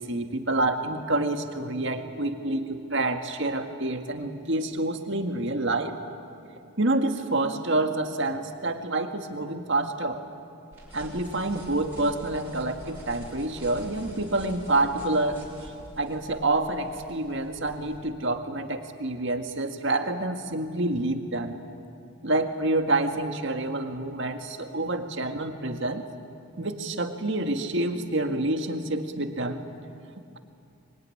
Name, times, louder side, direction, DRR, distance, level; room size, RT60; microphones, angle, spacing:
voice 1, 0.0-5.9 6.8-10.2 10.9-21.6 22.2-26.0 26.6-29.6, right 2 dB, 60° right, 6 dB, 1.9 m, -28 dB
sound 1, 10.7-18.0, equal, 10° right, 6.7 m, -46 dB
24.5 x 23.5 x 10.0 m, 2.5 s
head